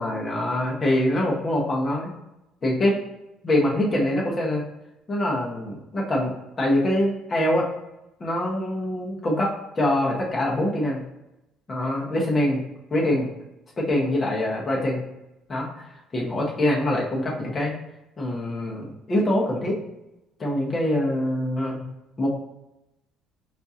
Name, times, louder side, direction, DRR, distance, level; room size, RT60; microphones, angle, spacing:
voice 1, 0.0-2.2 2.6-3.0 3.4-4.6 5.1-7.7 8.2-11.0 11.7-12.6 12.9-13.3 13.8-15.0 15.5-15.9 16.1-17.7 18.2-19.8 20.4-21.8 22.2-22.3, left 1 dB, 20° left, -3 dB, 0.7 m, -24 dB
5.1 x 2.4 x 2.7 m, 0.93 s
cardioid pair, 165°, 0 cm